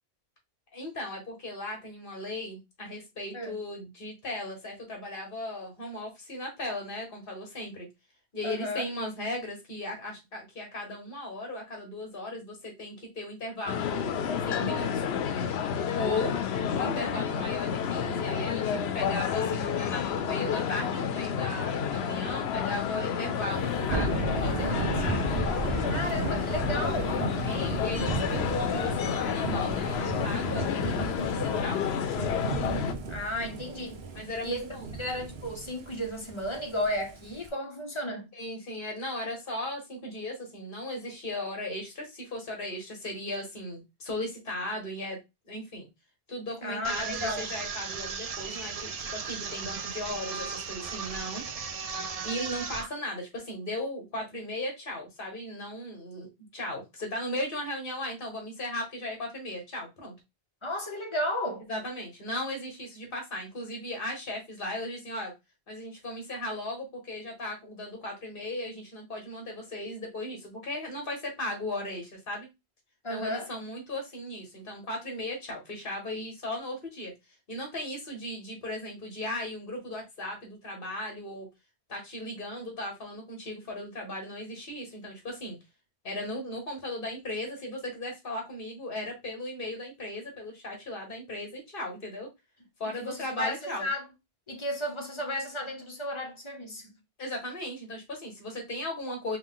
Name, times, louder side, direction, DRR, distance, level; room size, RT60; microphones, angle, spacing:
voice 1, 0.7-7.9 8.3-15.0 15.9-16.3 16.7-25.0 27.4-31.9 34.2-34.9 38.3-45.2 45.5-45.9 46.3-51.4 52.2-60.1 61.7-65.3 65.7-72.5 73.1-77.1 77.5-81.5 81.9-85.6 86.0-92.3 92.8-93.9 97.2-99.4, left 1 dB, 55° left, 1.7 m, -37 dB
voice 2, 8.4-8.9 15.9-16.4 16.8-17.2 25.9-27.3 33.1-34.0 34.4-34.7 35.0-38.3 46.6-47.5 60.6-61.7 73.0-73.5 93.0-94.1 94.5-96.9, left 1 dB, 30° left, 0.9 m, -34 dB
sound 1, 13.7-32.9, left 7 dB, 75° left, 0.8 m, -30 dB
Thunder / Rain, 23.5-37.5, right 2 dB, 75° right, 1.0 m, -34 dB
sound 2, 46.8-52.9, right 5 dB, 45° right, 0.5 m, -36 dB
4.7 x 2.3 x 3.7 m
omnidirectional pair, 1.1 m